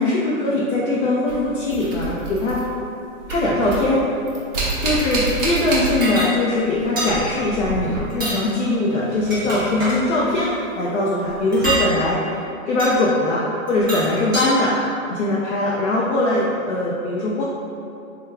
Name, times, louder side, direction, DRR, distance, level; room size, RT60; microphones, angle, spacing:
voice 1, 0.0-2.6 3.3-4.1 4.8-12.3 12.7-14.8 15.1-17.4, left 2 dB, 55° left, -6 dB, 0.6 m, -21 dB
sound 1, 1.3-3.0 3.2-6.4 6.7-8.4 10.3-10.4 11.3-11.4, right 2 dB, 35° right, 0.8 m, -28 dB
sound 2, 6.0-6.3 7.0-7.2 8.1-8.4 9.1-10.0 11.5-11.9 12.8-13.0 13.7-14.5, right 1 dB, 15° right, 0.4 m, -25 dB
3.3 x 2.3 x 3.3 m, 2.6 s
hypercardioid pair, 150°, 42 cm